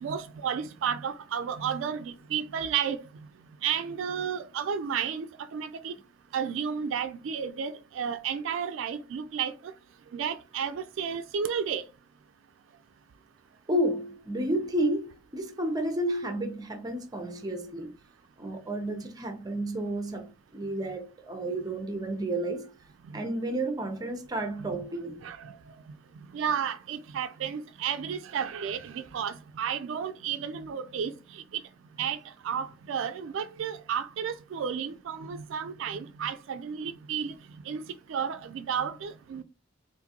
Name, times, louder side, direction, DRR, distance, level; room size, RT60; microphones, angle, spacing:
voice 1, 0.0-3.0 3.6-5.3 5.5-5.9 6.3-9.5 10.1-11.8 25.2-25.4 26.3-31.1 32.0-32.2 32.4-37.3 37.7-37.8 38.1-39.4, right 7 dB, 70° right, 0.3 m, -32 dB
voice 2, 13.7-17.9 18.4-22.7 23.1-25.3, right 1 dB, 20° right, 0.6 m, -31 dB
3.7 x 2.6 x 2.8 m
head